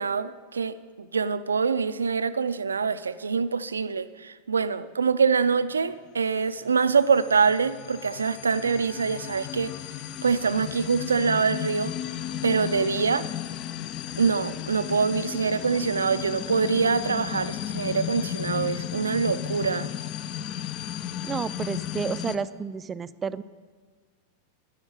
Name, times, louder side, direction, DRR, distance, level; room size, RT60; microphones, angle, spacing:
voice 1, 0.0-9.7 10.2-11.9 12.4-13.2 14.2-19.9, right 5 dB, 75° right, 15 dB, 0.5 m, -25 dB
sound 1, 6.7-22.4, left 10 dB, 40° left, 0.6 m, -34 dB
voice 2, 21.2-23.4, right 6 dB, 20° right, 16 dB, 0.4 m, -31 dB
11.5 x 10.5 x 6.5 m, 1.6 s
figure-of-eight pair, 90°, 0 cm